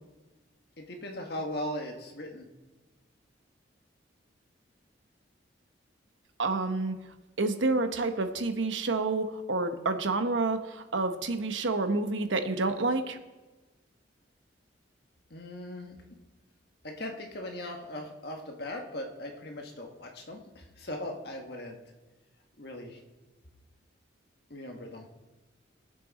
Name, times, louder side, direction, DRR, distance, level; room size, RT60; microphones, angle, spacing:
voice 1, 0.8-2.5 15.3-16.0 16.8-21.8 22.6-23.0 24.5-25.1, left 1 dB, 55° left, 2 dB, 1.6 m, -39 dB
voice 2, 6.4-7.0 7.4-13.2, right 3 dB, 90° right, 8 dB, 1.0 m, -29 dB
20.0 x 7.7 x 4.2 m, 1.2 s
head